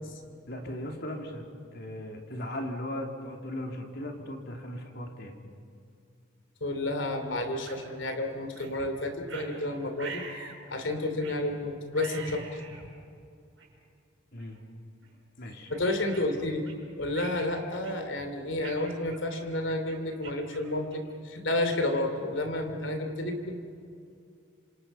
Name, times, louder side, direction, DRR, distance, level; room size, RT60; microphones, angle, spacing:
voice 1, 0.5-1.4 1.7-5.4 14.3-14.6 15.4-15.7, left 1 dB, 50° left, 3 dB, 2.8 m, -37 dB
voice 2, 6.6-10.2 10.7-12.6 15.7-16.6 17.0-23.6, left 1 dB, 70° left, 5 dB, 3.2 m, -31 dB
sound 1, 7.7-7.8 8.6-8.7 9.3-9.5 10.0-10.6 11.2-11.4 11.9-12.9 13.6-13.7 14.4-14.6 15.0-15.2 15.7-16.8 17.1-17.5 17.8-18.2 18.6-21.2, right 4 dB, 65° right, 6.2 m, -45 dB
27.0 x 26.5 x 5.6 m, 2.5 s
head